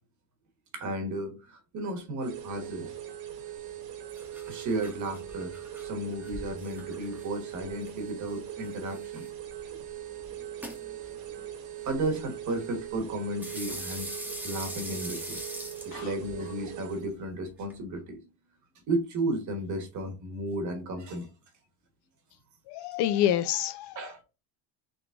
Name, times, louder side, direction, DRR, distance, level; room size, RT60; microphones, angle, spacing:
voice 1, 0.7-3.1 4.4-9.3 9.6-9.8 11.4-11.5 11.8-14.1 14.4-15.4 15.8-18.2 18.9-21.3 24.0-24.2, right 1 dB, 35° right, 1.3 m, -34 dB
sound 1, 2.2-17.1, right 11 dB, 80° right, 1.5 m, -41 dB
sound 2, 3.6-17.8, equal, 5° right, 0.9 m, -45 dB
voice 2, 22.7-24.2, left 11 dB, 55° left, 0.5 m, -28 dB
4.0 x 3.2 x 3.5 m
cardioid pair, 155°, 49 cm